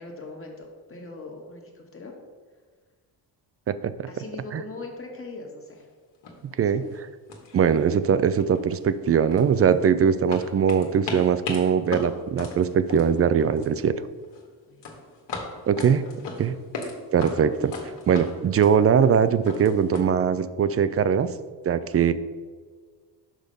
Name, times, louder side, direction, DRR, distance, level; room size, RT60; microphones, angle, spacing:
voice 1, 0.0-2.1 4.1-5.9 6.6-6.9 14.7-14.9 15.4-15.5, left 3 dB, 30° left, 0 dB, 1.6 m, -41 dB
sound 1, 5.7-5.8 6.2-6.5 6.8-7.0 7.3-8.1 8.4-9.9 10.3-13.8 14.1-14.5 14.8-16.9 17.2-20.0, left 3 dB, 70° left, 1.7 m, -37 dB
voice 2, 6.6-7.1 7.5-14.0 15.7-16.0 16.4-16.5 17.1-17.7 18.1-21.3 21.7-22.1, right 7 dB, 35° right, 13 dB, 0.4 m, -21 dB
6.3 x 5.1 x 5.2 m, 1.5 s
cardioid pair, 90°, 44 cm